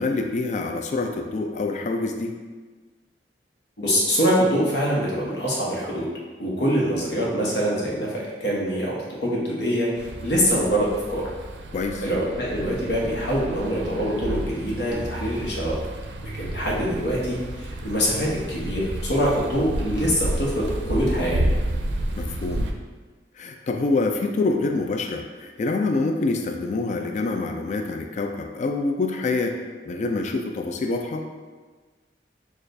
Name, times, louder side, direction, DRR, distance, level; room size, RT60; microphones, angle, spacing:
voice 1, 0.0-2.3 11.7-12.0 22.2-22.7 23.4-29.6 29.9-31.3, left 3 dB, 40° left, 4 dB, 0.3 m, -26 dB
voice 2, 3.8-6.0 6.4-11.3 12.0-15.8 16.2-21.5, equal, 75° left, -4 dB, 1.0 m, -24 dB
sound 1, 10.0-22.7, right 1 dB, 80° right, 0.4 m, -31 dB
6.3 x 2.4 x 2.6 m, 1.4 s
head